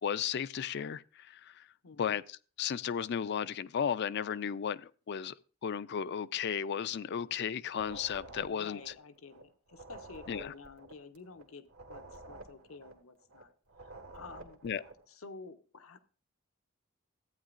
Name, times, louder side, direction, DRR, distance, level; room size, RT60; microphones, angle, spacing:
voice 1, 0.0-1.7 2.0-5.3 5.6-8.8 10.3-10.5 14.6-14.8, left 8 dB, 55° left, 0.4 m, -34 dB
voice 2, 1.8-2.2 8.4-13.5 13.8-14.6 15.1-16.0, left 4 dB, 80° left, 0.8 m, -51 dB
sound 1, 7.7-9.4 9.7-13.4 13.7-15.1, right 2 dB, 80° right, 1.6 m, -50 dB
14.0 x 8.9 x 2.5 m
head